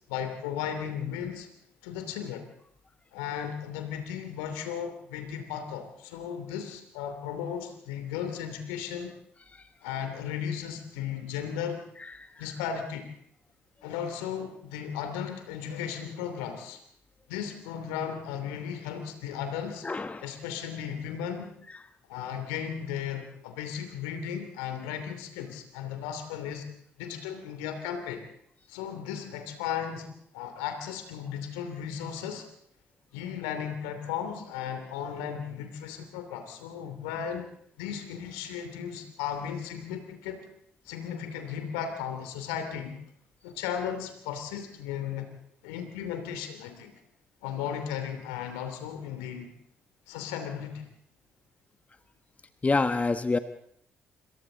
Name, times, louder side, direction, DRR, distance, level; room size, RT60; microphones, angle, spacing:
voice 1, 0.1-1.5 1.8-2.5 3.1-9.1 9.8-11.8 12.4-13.1 13.8-16.8 17.3-19.9 20.2-21.5 22.1-26.7 27.0-28.3 28.7-32.5 33.1-37.5 37.8-40.5 40.8-43.0 43.4-45.3 45.6-46.9 47.4-49.5 50.1-50.9, left 8 dB, 75° left, 7 dB, 2.9 m, -35 dB
voice 2, 19.8-20.3 52.6-53.4, left 3 dB, 25° left, 10 dB, 1.3 m, -26 dB
27.0 x 26.0 x 3.9 m, 0.67 s
figure-of-eight pair, 45°, 6 cm